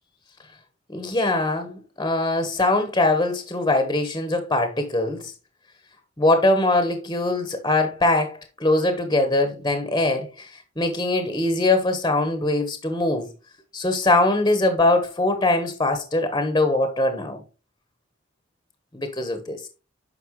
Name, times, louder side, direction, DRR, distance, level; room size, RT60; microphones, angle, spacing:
voice 1, 0.9-5.2 6.2-10.5 10.8-13.3 13.7-17.4 18.9-19.6, left 2 dB, 20° left, 1.2 m, -22 dB
9.6 x 5.7 x 3.2 m
head